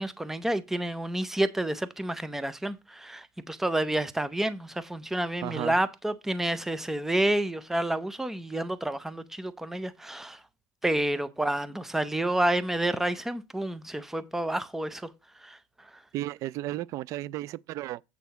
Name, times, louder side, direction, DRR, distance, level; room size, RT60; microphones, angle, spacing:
voice 1, 0.0-10.4 10.8-15.1 15.4-15.6, right 1 dB, 5° right, 0.6 m, -29 dB
voice 2, 5.4-5.8 16.1-18.0, right 15 dB, 50° right, 0.3 m, -34 dB
8.4 x 4.0 x 5.7 m
cardioid pair, 165°, 7 cm